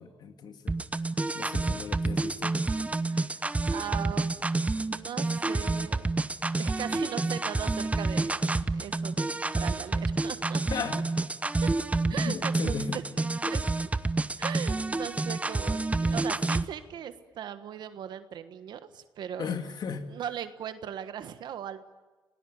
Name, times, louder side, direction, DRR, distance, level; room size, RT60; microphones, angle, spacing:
voice 1, 0.0-2.6 10.7-11.1 12.1-13.1 19.4-20.2, left 6 dB, 65° left, 7 dB, 2.4 m, -37 dB
sound 1, 0.7-16.7, right 3 dB, 20° right, 0.9 m, -29 dB
voice 2, 3.1-4.4 4.8-6.1 6.6-8.4 8.7-10.6 11.6-11.7 12.1-13.0 13.5-13.6 14.4-19.5 20.1-21.8, right 9 dB, 75° right, 11 dB, 1.3 m, -39 dB
28.0 x 18.5 x 9.4 m, 1.2 s
cardioid pair, 90°, 8 cm